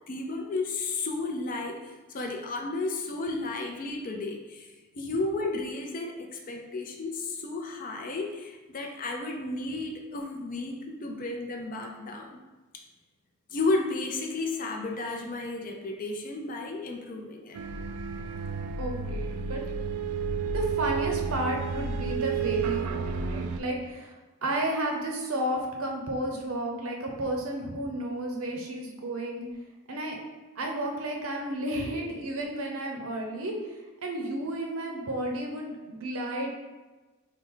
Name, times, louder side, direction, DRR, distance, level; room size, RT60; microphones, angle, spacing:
voice 1, 0.1-12.4 12.7-12.8 13.5-17.6, left 3 dB, 35° left, 2 dB, 0.4 m, -33 dB
sound 1, 17.5-23.6, right 5 dB, 90° right, 0.3 m, -31 dB
voice 2, 18.8-19.6 20.5-24.1 24.4-29.4 29.9-30.2 30.6-33.5 34.0-36.5, right 1 dB, 65° right, 1 dB, 0.7 m, -32 dB
4.6 x 2.1 x 3.7 m, 1.2 s
head